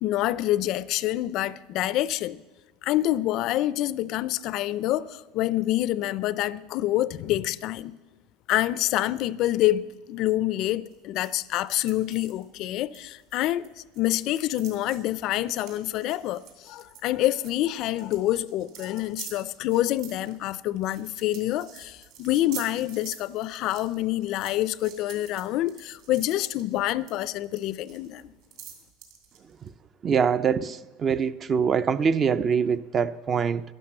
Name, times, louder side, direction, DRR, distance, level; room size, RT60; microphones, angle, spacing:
voice 1, 0.0-2.4 2.8-8.0 8.5-28.3, left 14 dB, 45° left, 0.4 m, -27 dB
sound 1, 10.9-13.7 13.9-29.7, right 8 dB, 50° right, 2.8 m, -47 dB
voice 2, 30.0-33.6, right 6 dB, 25° right, 0.4 m, -24 dB
11.5 x 11.0 x 7.5 m
supercardioid pair, 155°, 0 cm